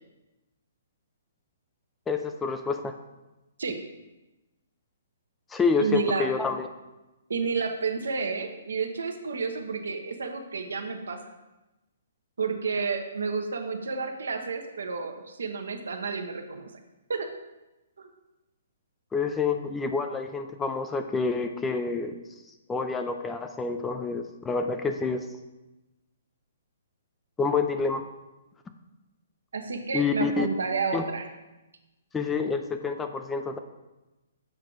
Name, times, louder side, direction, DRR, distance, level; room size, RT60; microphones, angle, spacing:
voice 1, 2.1-3.0 5.5-6.7 19.1-22.1 22.7-25.2 27.4-28.1 29.9-30.5 30.9-31.1 32.1-33.6, left 4 dB, 10° left, 6 dB, 0.4 m, -28 dB
voice 2, 5.8-6.3 7.3-11.2 12.4-16.7 17.1-17.3 18.0-18.1 29.5-31.3, right 5 dB, 75° right, 5 dB, 0.9 m, -30 dB
7.4 x 4.4 x 3.9 m, 1.0 s
hypercardioid pair, 135°, 0 cm